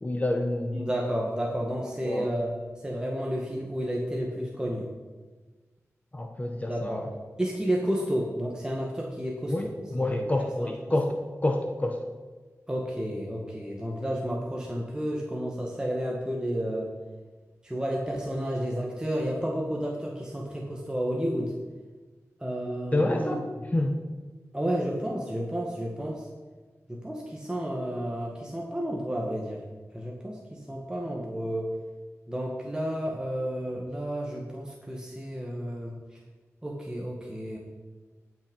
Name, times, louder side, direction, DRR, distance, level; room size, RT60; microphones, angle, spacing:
voice 1, 0.0-0.9 2.0-2.3 6.1-7.1 9.5-12.0 22.9-23.5 23.7-24.0, left 1 dB, 25° left, 4 dB, 1.2 m, -28 dB
voice 2, 0.7-2.6 2.8-4.9 6.6-7.1 7.4-9.7 10.0-10.3 12.7-16.9 17.6-21.5 22.4-23.6 24.5-26.3 26.9-29.6 29.9-31.7 32.3-35.9 36.6-37.6, equal, 15° right, -2 dB, 1.9 m, -31 dB
17.5 x 6.3 x 5.4 m, 1.3 s
wide cardioid pair, 70°, 5 cm